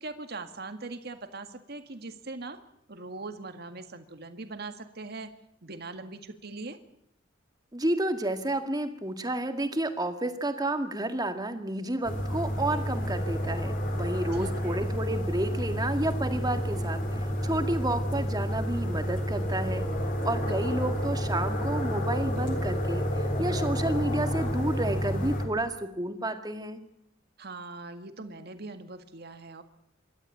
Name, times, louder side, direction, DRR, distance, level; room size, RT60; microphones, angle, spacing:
voice 1, 0.0-2.6 2.9-5.3 5.6-6.8 14.3-14.8 20.5-20.9 27.4-29.6, right 3 dB, 55° right, 8 dB, 1.9 m, -41 dB
voice 2, 7.7-19.9 20.2-26.8, right 1 dB, 20° right, 7 dB, 2.0 m, -31 dB
sound 1, 12.0-25.5, equal, 45° left, 4.0 m, -30 dB
26.0 x 12.5 x 8.7 m, 0.79 s
head